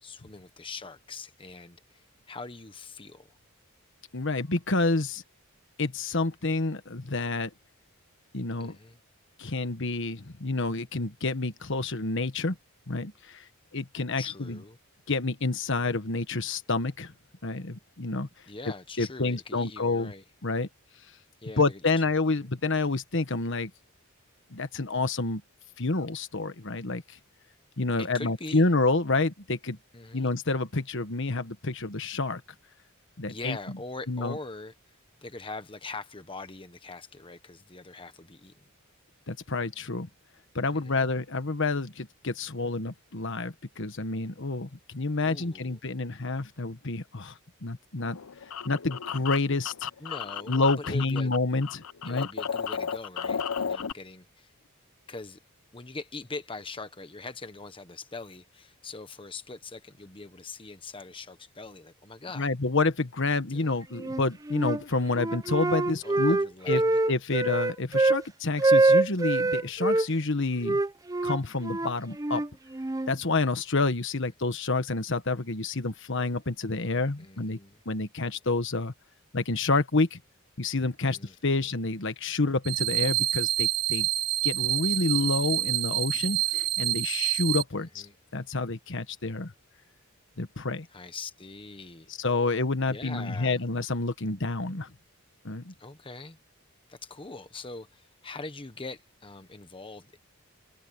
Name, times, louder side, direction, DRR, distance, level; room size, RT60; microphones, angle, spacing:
voice 1, 0.0-3.4 8.6-9.0 14.2-14.8 18.5-20.2 21.4-22.1 28.0-28.7 29.9-30.3 33.3-34.7 35.2-38.7 40.7-41.1 45.2-45.8 50.0-51.3 52.0-54.5 55.1-55.4 55.7-62.5 63.5-63.8 66.0-67.0 77.2-77.8 81.1-81.7 87.7-88.1 90.9-92.1 92.9-93.6 95.8-96.4 96.9-100.2, left 3 dB, 25° left, 1.2 m, -42 dB
voice 2, 4.1-5.2 5.8-7.5 8.3-8.7 9.4-12.6 12.9-13.4 13.7-14.6 15.1-17.1 17.4-18.3 19.0-20.1 20.4-20.7 21.6-23.7 24.5-25.4 25.8-27.2 27.8-29.8 30.1-32.4 33.2-33.6 34.1-34.4 39.3-40.1 40.5-47.3 47.6-48.2 48.6-49.9 50.5-52.3 62.4-66.4 66.7-66.8 67.1-70.8 71.2-72.4 73.1-77.6 77.8-78.9 79.3-80.2 80.6-84.1 84.4-88.1 88.3-89.5 90.4-90.9 92.2-94.9 95.4-95.7, left 3 dB, 60° left, 1.4 m, -28 dB
sound 1, 48.0-51.4 51.6-53.9, left 7 dB, 85° left, 0.8 m, -34 dB
Wind instrument woodwind instrument, 64.0-64.8 65.1-68.2 68.6-70.1 70.6-73.1, right 2 dB, 15° right, 0.6 m, -25 dB
sound 2, 82.6-87.6, right 15 dB, 50° right, 1.5 m, -27 dB
head